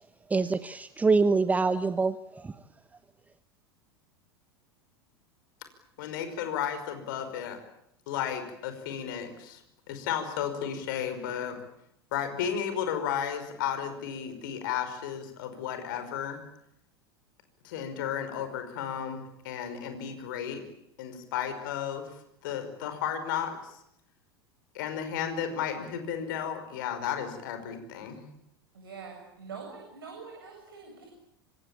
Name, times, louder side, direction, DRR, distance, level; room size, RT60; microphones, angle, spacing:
voice 1, 0.3-2.5, right 4 dB, 10° right, 14 dB, 1.0 m, -25 dB
voice 2, 6.0-7.6 8.1-9.6 9.9-11.6 12.1-16.4 17.6-20.6 21.0-22.1 22.4-23.8 24.7-28.3, left 8 dB, 55° left, 8 dB, 5.5 m, -33 dB
voice 3, 28.7-31.1, right 5 dB, 70° right, 0 dB, 7.8 m, -44 dB
26.0 x 25.0 x 8.8 m, 0.78 s
figure-of-eight pair, 80°, 13 cm